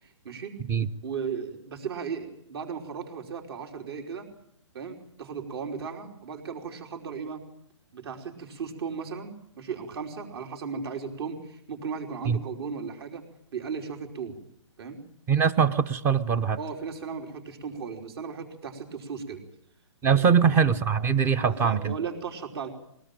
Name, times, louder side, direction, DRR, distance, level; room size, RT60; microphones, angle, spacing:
voice 1, 0.0-0.5 1.0-4.3 4.7-7.4 7.9-13.2 13.5-14.4 14.8-15.0 16.6-19.4 20.1-20.4 21.4-22.7, right 6 dB, 55° right, 3 dB, 5.3 m, -36 dB
voice 2, 15.3-16.6 20.0-21.9, right 7 dB, 15° right, 17 dB, 0.9 m, -22 dB
22.0 x 19.0 x 9.1 m, 0.71 s
hypercardioid pair, 150°, 16 cm